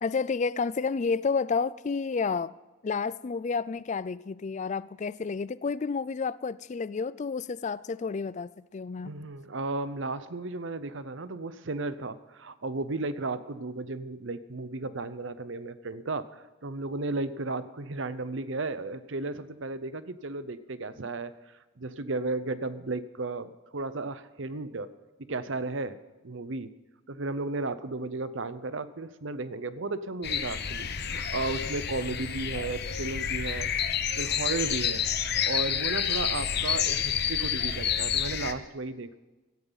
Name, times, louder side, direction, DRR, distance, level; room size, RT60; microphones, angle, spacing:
voice 1, 0.0-2.5 2.8-9.2, left 5 dB, 35° left, 0.3 m, -30 dB
voice 2, 9.0-21.3 21.8-24.9 25.3-26.0 26.2-26.7 27.1-33.7 34.2-35.0 35.4-39.2, right 3 dB, 60° right, 0.8 m, -34 dB
sound 1, 30.2-38.5, left 8 dB, 50° left, 0.9 m, -29 dB
17.0 x 13.5 x 4.1 m
head